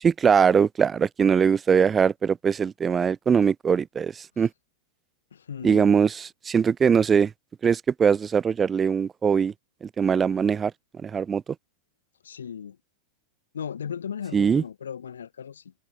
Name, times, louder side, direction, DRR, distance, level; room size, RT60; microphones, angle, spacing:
voice 1, 0.0-4.5 5.6-7.3 7.6-9.5 9.8-10.7 11.0-11.4 14.3-14.6, right 6 dB, 20° right, 0.7 m, -21 dB
voice 2, 5.3-5.9 12.2-12.8 13.5-15.7, left 8 dB, 70° left, 2.0 m, -36 dB
figure-of-eight pair, 90°, 0 cm